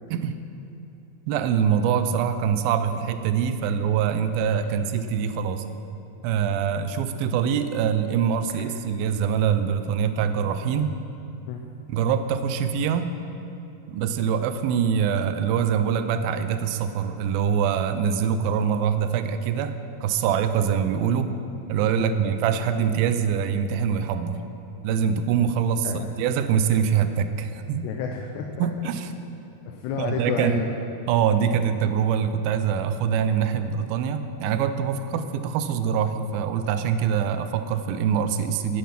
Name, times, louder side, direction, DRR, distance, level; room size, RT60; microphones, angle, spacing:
voice 1, 1.3-5.6 6.2-11.0 11.9-13.2 13.9-21.3 21.7-24.4 24.8-27.9 28.6-29.1 30.0-30.7 31.1-38.8, right 7 dB, 80° right, 9 dB, 2.2 m, -24 dB
voice 2, 27.8-28.7 29.7-30.7, left 6 dB, 90° left, 2 dB, 3.0 m, -30 dB
17.5 x 7.4 x 5.8 m, 2.9 s
omnidirectional pair, 4.8 m